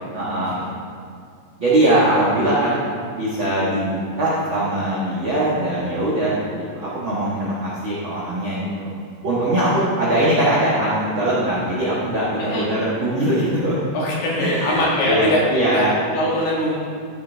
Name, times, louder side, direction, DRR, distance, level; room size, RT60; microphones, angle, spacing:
voice 1, 0.1-0.6 1.6-2.8 3.1-8.9 9.2-13.8 14.4-15.9, right 1 dB, 55° right, -8 dB, 1.3 m, -21 dB
voice 2, 9.6-10.2 12.4-12.7 13.9-16.8, left 1 dB, 60° left, -4 dB, 3.1 m, -23 dB
13.5 x 8.2 x 3.4 m, 2.3 s
omnidirectional pair, 4.9 m